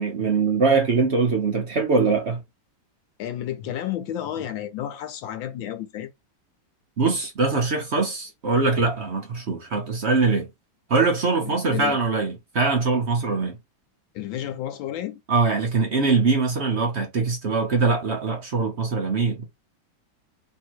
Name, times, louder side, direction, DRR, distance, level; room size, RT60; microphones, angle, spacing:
voice 1, 0.0-2.4 7.0-10.5 10.9-13.6 15.3-19.5, right 4 dB, 55° right, 0.8 m, -22 dB
voice 2, 3.2-6.1 11.4-12.0 14.1-15.2, left 11 dB, 80° left, 1.5 m, -31 dB
3.4 x 2.7 x 4.5 m
omnidirectional pair, 2.1 m